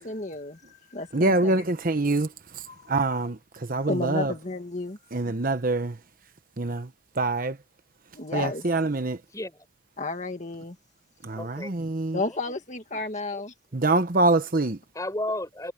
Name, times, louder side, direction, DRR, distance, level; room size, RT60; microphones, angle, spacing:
voice 1, 0.0-1.6 2.7-2.9 3.8-5.0 8.1-8.6 10.0-10.8 11.3-11.4 12.1-13.5, left 3 dB, 35° left, 1.9 m, -32 dB
voice 2, 1.1-2.3 2.5-2.6 2.9-4.3 5.1-6.0 6.6-6.9 7.2-7.6 8.3-9.2 11.2-12.2 13.7-14.8, right 2 dB, 45° right, 1.0 m, -25 dB
voice 3, 9.3-9.6 11.4-11.7 12.2-12.6 13.3-13.4 14.9-15.7, left 1 dB, 15° left, 5.1 m, -33 dB
head